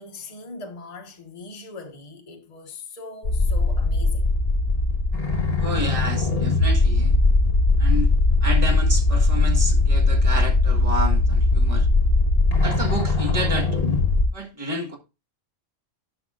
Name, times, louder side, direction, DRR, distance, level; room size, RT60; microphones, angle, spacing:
voice 1, 0.0-4.3, left 3 dB, 30° left, 1.2 m, -40 dB
sound 1, 3.2-14.3, left 2 dB, 50° left, 1.9 m, -20 dB
voice 2, 5.6-7.1 7.8-8.1 8.4-11.9 12.6-13.8 14.3-15.0, equal, 25° right, 1.6 m, -30 dB
11.5 x 6.3 x 2.4 m
omnidirectional pair, 1.3 m